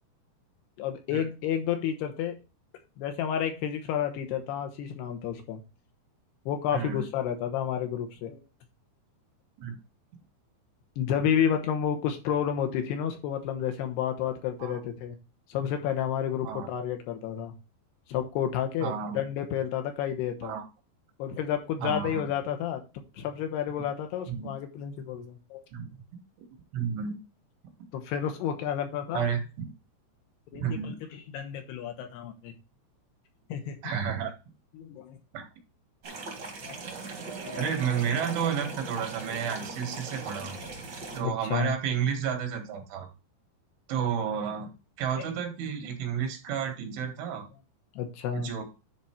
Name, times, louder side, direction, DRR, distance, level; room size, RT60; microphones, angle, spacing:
voice 1, 0.8-2.4 3.0-5.6 6.5-8.4 11.0-15.1 15.5-17.5 18.1-20.5 21.2-25.6 27.9-29.3 30.5-32.5 33.5-33.8 34.7-35.2 36.6-36.8 37.4-37.6 40.6-40.7 41.2-41.8 47.2-47.3 48.0-48.5, left 9 dB, 75° left, 6 dB, 2.8 m, -31 dB
voice 2, 6.7-7.0 9.6-9.8 14.6-14.8 16.4-16.7 18.8-19.2 20.4-20.6 21.8-22.3 24.3-24.5 25.7-25.9 26.7-27.1 29.1-29.4 30.6-30.9 33.8-34.3 35.3-35.4 37.6-40.6 41.2-43.1 43.9-44.7 45.0-47.5 48.3-48.6, right 7 dB, 85° right, 5 dB, 4.1 m, -31 dB
sound 1, 36.0-41.2, right 3 dB, 45° right, 1.3 m, -39 dB
10.5 x 4.1 x 4.4 m, 0.29 s
omnidirectional pair, 5.3 m